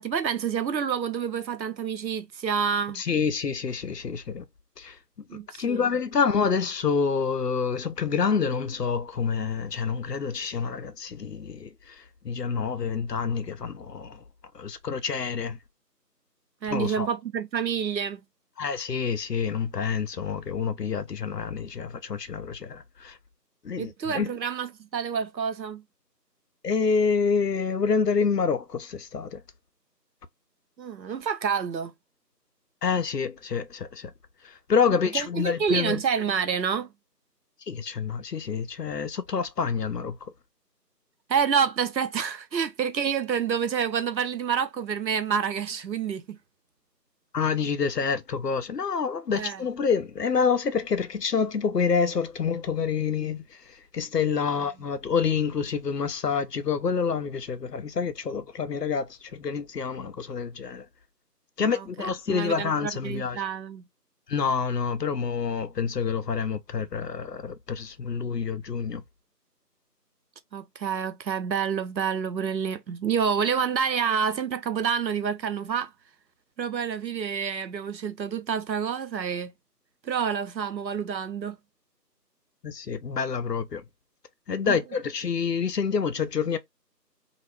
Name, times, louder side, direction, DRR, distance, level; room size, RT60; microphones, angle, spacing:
voice 1, 0.0-3.0 5.3-5.8 16.6-18.2 23.8-25.8 30.8-31.9 35.1-36.9 41.3-46.4 49.3-49.6 61.7-63.8 70.5-75.9 76.6-79.5 80.0-81.6 84.7-84.8, right 7 dB, 85° right, 0.6 m, -28 dB
voice 2, 2.9-4.5 4.8-14.2 14.5-15.6 16.6-17.1 18.6-23.2 23.6-24.3 26.6-29.4 32.8-34.1 34.4-36.0 37.7-40.3 47.3-60.9 61.6-63.4 64.3-69.0 82.6-83.8 84.5-86.6, left 6 dB, 75° left, 0.6 m, -27 dB
2.4 x 2.1 x 3.1 m
figure-of-eight pair, 175°, 50 cm